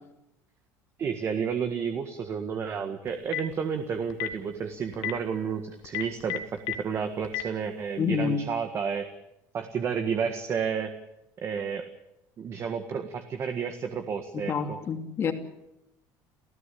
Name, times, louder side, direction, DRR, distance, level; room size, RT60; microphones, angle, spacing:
voice 1, 1.0-9.1 9.5-10.9 11.4-11.9 12.4-14.8, right 6 dB, 35° right, 7 dB, 1.7 m, -31 dB
Telephone, 3.1-3.5 4.1-4.3 4.9-5.1 5.8-6.7 7.2-7.4, left 15 dB, 70° left, 1.9 m, -30 dB
voice 2, 8.0-8.4 14.3-15.3, left 6 dB, 35° left, 5 dB, 2.8 m, -28 dB
28.5 x 15.0 x 8.5 m, 0.88 s
cardioid pair, 135°, 7 cm